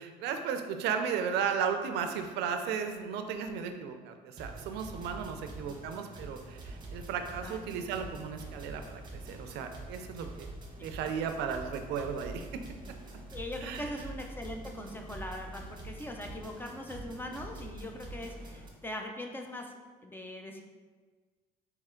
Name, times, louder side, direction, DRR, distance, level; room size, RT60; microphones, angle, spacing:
voice 1, 0.0-10.5 10.8-12.5 13.6-13.9, right 7 dB, 85° right, 7 dB, 0.5 m, -35 dB
sound 1, 4.4-18.7, right 2 dB, 25° right, 0.9 m, -45 dB
voice 2, 13.3-19.7 20.0-20.6, left 1 dB, 10° left, 2 dB, 0.5 m, -41 dB
4.3 x 3.0 x 3.7 m, 1.4 s
cardioid pair, 110°, 17 cm